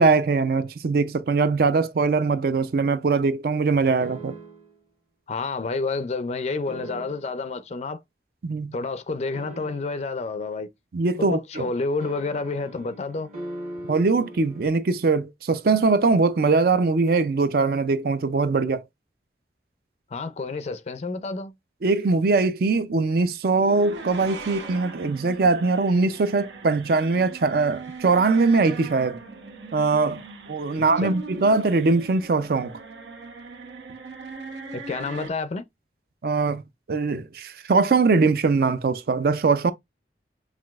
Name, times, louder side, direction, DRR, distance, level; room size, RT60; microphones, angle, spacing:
voice 1, 0.0-4.3 8.4-8.7 10.9-11.6 13.9-18.8 21.8-29.2 29.7-30.2 30.5-32.7 36.2-36.6 36.9-39.7, right 4 dB, 55° right, 0.4 m, -21 dB
sound 1, 4.0-4.8 6.7-7.5 9.3-10.2 12.0-14.7, right 1 dB, 40° right, 1.1 m, -40 dB
voice 2, 5.3-8.0 8.7-10.7 11.2-13.3 20.1-21.5 31.0-31.2 34.7-35.6, left 3 dB, 35° left, 0.4 m, -29 dB
voices in head, 23.5-35.3, right 3 dB, 85° right, 0.9 m, -40 dB
5.8 x 2.3 x 2.3 m
head